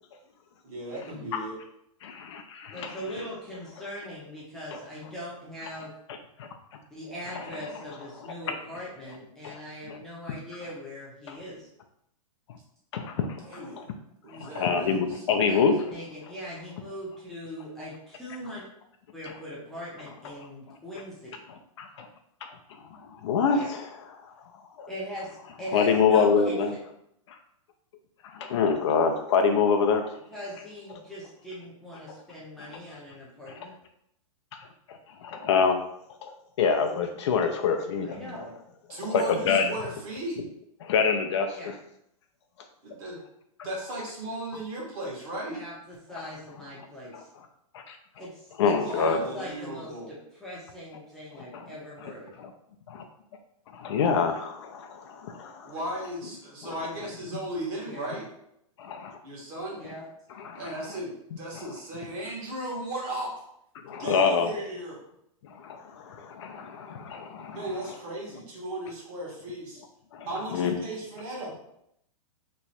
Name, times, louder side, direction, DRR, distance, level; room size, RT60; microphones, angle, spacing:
voice 1, 0.6-1.6 13.4-13.8 14.2-15.2 38.9-40.4 42.8-43.2 43.6-45.6 48.8-50.1 55.6-58.3 59.2-59.8 60.5-63.3 64.0-65.0 67.5-69.8 70.2-71.6, right 1 dB, 35° right, -4 dB, 1.3 m, -36 dB
voice 2, 2.0-3.0 6.4-6.5 7.4-7.5 9.4-9.6 9.9-10.0 11.3-11.4 12.9-13.8 14.4-15.8 21.8-22.1 22.4-22.5 22.9-23.8 24.2-24.3 24.8-24.9 25.7-26.7 27.3-27.4 28.2-30.2 32.7-32.8 33.5-33.6 35.2-35.8 36.2-38.3 39.1-39.7 40.8-41.7 47.1-47.2 47.7-48.0 48.6-49.2 51.5-51.6 52.4-52.5 52.9-53.0 53.7-55.7 56.6-56.7 58.8-59.2 60.3-60.7 61.5-61.6 63.8-64.5 65.4-67.6 70.1-70.7, left 5 dB, 55° left, 4 dB, 0.5 m, -26 dB
voice 3, 2.7-5.9 6.9-11.7 15.4-18.6 19.1-21.3 23.5-23.7 24.9-26.8 30.3-33.8 38.0-38.5 41.5-41.7 45.5-47.3 48.2-52.3 57.8-58.2 59.8-60.1, equal, ahead, -8 dB, 0.7 m, -41 dB
3.0 x 2.3 x 4.1 m, 0.75 s
hypercardioid pair, 155°, 18 cm